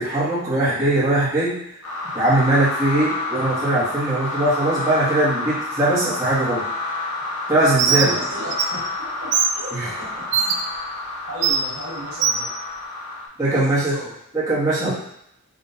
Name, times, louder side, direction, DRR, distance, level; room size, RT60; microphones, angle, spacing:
voice 1, 0.0-1.5 2.1-6.6 7.5-8.1 9.7-9.9 13.4-14.0 14.3-14.9, right 1 dB, 15° right, -11 dB, 1.4 m, -20 dB
sound 1, 1.8-13.3, left 2 dB, 70° left, 1.3 m, -30 dB
Bird, 7.8-8.1 8.5-8.6 9.3-9.5 10.3-10.5 11.4-11.6 12.2-12.4, right 7 dB, 55° right, 0.4 m, -19 dB
voice 2, 7.8-8.8 9.2-10.6 11.3-12.5 13.4-14.1, equal, 80° right, -6 dB, 1.6 m, -35 dB
5.2 x 2.7 x 2.8 m, 0.75 s
head